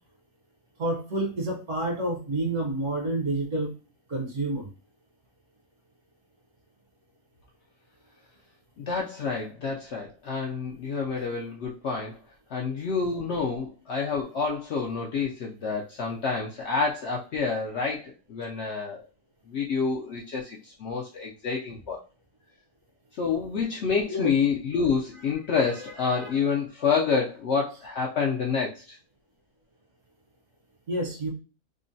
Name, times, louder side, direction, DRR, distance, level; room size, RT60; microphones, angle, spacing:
voice 1, 0.8-3.7 4.1-4.7 24.1-24.3 26.1-26.3 30.9-31.3, right 1 dB, 60° right, 0 dB, 1.2 m, -29 dB
voice 2, 8.8-12.2 12.5-19.0 19.5-22.0 23.2-29.0, left 5 dB, 65° left, -2 dB, 0.7 m, -28 dB
3.7 x 2.1 x 2.6 m, 0.34 s
omnidirectional pair, 1.5 m